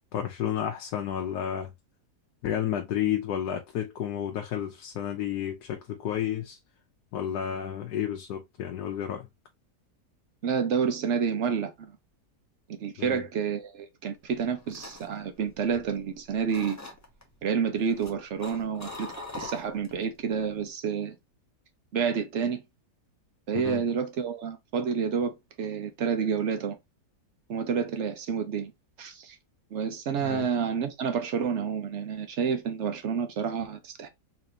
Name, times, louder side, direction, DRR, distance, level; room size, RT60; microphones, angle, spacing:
voice 1, 0.0-1.7 2.4-6.6 7.1-9.3 13.0-13.2 23.5-23.8 30.2-30.5, left 10 dB, 80° left, 1.2 m, -31 dB
voice 2, 10.4-11.9 12.7-16.8 17.4-21.2 21.9-22.6 23.5-26.8 27.5-28.7 29.0-29.4 29.7-34.1, right 6 dB, 55° right, 0.9 m, -29 dB
sound 1, 14.3-16.1 16.5-17.2 17.8-20.0 20.4-20.7, left 2 dB, 15° left, 0.7 m, -42 dB
4.1 x 3.0 x 2.6 m
omnidirectional pair, 1.8 m